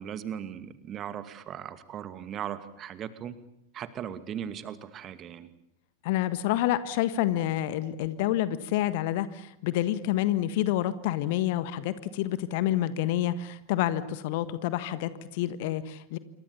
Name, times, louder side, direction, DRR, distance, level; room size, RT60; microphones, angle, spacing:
voice 1, 0.0-3.4 3.7-5.5, right 9 dB, 30° right, 12 dB, 2.3 m, -38 dB
voice 2, 6.0-16.2, left 13 dB, 50° left, 14 dB, 1.5 m, -28 dB
27.5 x 24.5 x 7.2 m, 0.74 s
figure-of-eight pair, 90°, 0 cm